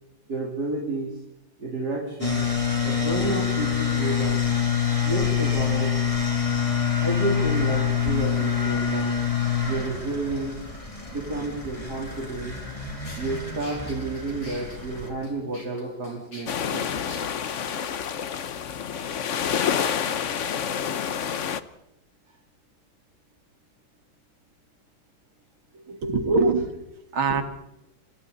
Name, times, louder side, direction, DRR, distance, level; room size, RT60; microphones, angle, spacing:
voice 1, 0.3-1.2 1.6-2.5 2.8-4.4 5.0-6.0 7.0-9.3 9.6-10.6 11.1-12.5 13.2-16.9, right 2 dB, 50° right, -2 dB, 4.1 m, -31 dB
sound 1, 2.2-15.1, left 7 dB, 15° left, 3.6 m, -26 dB
sound 2, 13.1-17.2, left 1 dB, 75° left, 5.8 m, -46 dB
sound 3, 16.5-21.6, left 8 dB, 50° left, 1.0 m, -28 dB
voice 2, 25.7-26.8 27.1-27.4, right 3 dB, 85° right, 8 dB, 2.8 m, -23 dB
27.5 x 25.5 x 4.1 m, 0.87 s
omnidirectional pair, 2.1 m